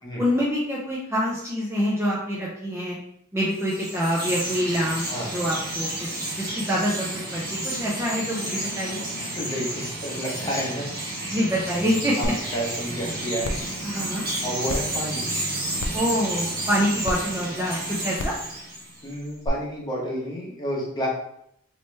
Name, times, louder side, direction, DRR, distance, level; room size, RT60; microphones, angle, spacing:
voice 1, 0.2-3.0 3.3-5.0 5.3-5.9 6.3-9.1 11.2-12.1 13.8-14.3 15.7-18.3, equal, 10° right, -6 dB, 0.5 m, -26 dB
Chirp tweet, 3.5-19.1, right 1 dB, 45° right, 1.0 m, -31 dB
voice 2, 9.2-10.9 12.2-12.3 12.5-13.5 14.4-15.3 19.0-21.1, equal, 20° left, -4 dB, 0.9 m, -30 dB
sound 1, 12.2-12.3 12.8-12.9 13.4-13.7 14.7-14.8 15.8-16.1 17.0-17.1 18.2-18.4 19.4-19.5, left 2 dB, 85° left, 0.4 m, -29 dB
3.0 x 2.9 x 3.3 m, 0.73 s
head